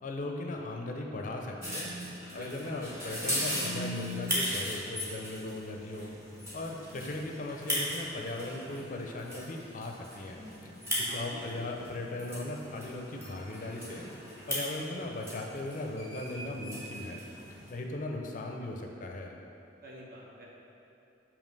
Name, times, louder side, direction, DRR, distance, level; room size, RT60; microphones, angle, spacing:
voice 1, 0.0-1.9 2.3-6.1 6.5-10.7 11.0-14.1 14.5-17.2 17.7-19.3, left 2 dB, 45° left, 2 dB, 0.5 m, -38 dB
sound 1, 1.6-17.7, equal, 15° right, 1.4 m, -38 dB
voice 2, 2.3-2.7 11.1-11.6 19.8-20.5, equal, 50° right, -4 dB, 1.0 m, -47 dB
7.1 x 2.9 x 5.3 m, 2.7 s
head